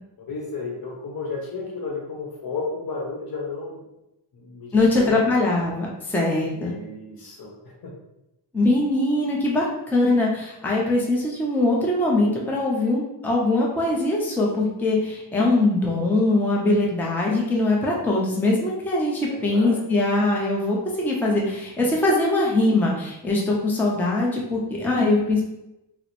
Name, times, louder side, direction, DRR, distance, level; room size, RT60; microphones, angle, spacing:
voice 1, 0.2-3.8 4.3-5.5 6.5-7.9 19.3-19.8, left 4 dB, 55° left, 0 dB, 0.9 m, -33 dB
voice 2, 4.7-6.7 8.5-25.4, left 2 dB, 5° left, -3 dB, 0.5 m, -22 dB
2.9 x 2.0 x 4.1 m, 0.90 s
wide cardioid pair, 105°, 43 cm